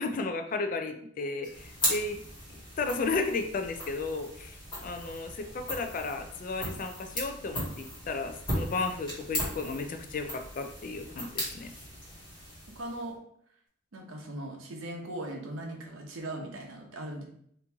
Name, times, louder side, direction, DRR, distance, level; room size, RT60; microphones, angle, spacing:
voice 1, 0.0-2.2 2.5-11.7, left 3 dB, 40° left, 7 dB, 0.3 m, -34 dB
sound 1, 1.4-13.1, equal, 20° left, 1.3 m, -37 dB
voice 2, 12.7-13.1 13.9-17.3, right 1 dB, 80° right, 1 dB, 0.8 m, -39 dB
3.0 x 2.6 x 3.4 m, 0.67 s
head